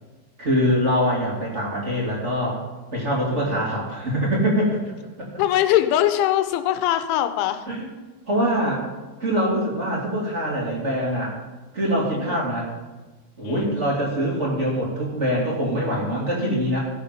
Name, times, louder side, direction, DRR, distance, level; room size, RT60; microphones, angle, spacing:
voice 1, 0.4-2.6 2.9-4.7 7.7-7.9 8.3-8.8 9.2-11.3 11.7-12.7 13.4-16.8, equal, 20° right, -3 dB, 2.2 m, -23 dB
voice 2, 3.3-3.7 5.4-7.6 12.1-12.4 13.4-13.7, left 12 dB, 90° left, 10 dB, 3.2 m, -22 dB
17.0 x 6.6 x 5.9 m, 1.2 s
omnidirectional pair, 5.3 m